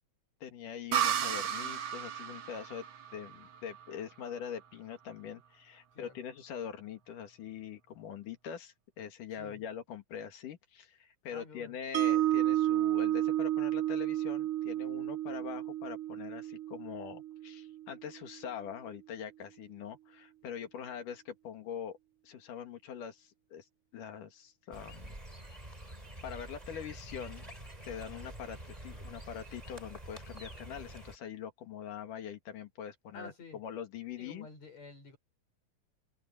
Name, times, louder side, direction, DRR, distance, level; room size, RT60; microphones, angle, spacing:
voice 1, 0.4-2.9 3.1-22.0 22.2-23.7 23.9-25.2 26.2-27.5 27.9-34.5, left 8 dB, 85° left, 3.6 m, -43 dB
sound 1, 0.9-4.5, right 9 dB, 55° right, 1.5 m, -34 dB
voice 2, 11.3-11.8 33.1-33.6 34.2-35.2, left 3 dB, 60° left, 7.4 m, -50 dB
Mallet percussion, 11.9-18.1, right 13 dB, 90° right, 2.5 m, -31 dB
sound 2, 24.7-31.2, right 1 dB, 10° right, 4.2 m, -47 dB
omnidirectional pair, 3.6 m